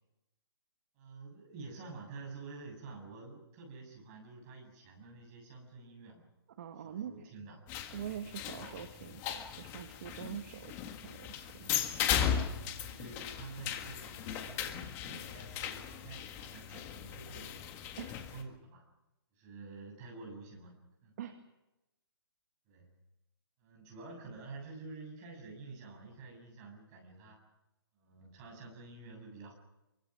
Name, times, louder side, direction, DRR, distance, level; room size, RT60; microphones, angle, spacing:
voice 1, 1.0-6.3 6.8-7.6 8.6-8.9 12.7-17.7 18.3-18.8 19.4-20.7 21.0-21.2 22.7-22.9 23.6-27.4 28.0-29.5, right 3 dB, 20° right, 1 dB, 7.3 m, -49 dB
voice 2, 6.6-7.3 7.9-11.8 18.0-18.2 21.2-21.4, right 9 dB, 40° right, 6 dB, 1.9 m, -44 dB
sound 1, 7.7-18.4, left 9 dB, 20° left, 1.8 m, -37 dB
27.0 x 24.0 x 6.2 m, 0.97 s
hypercardioid pair, 165°, 13 cm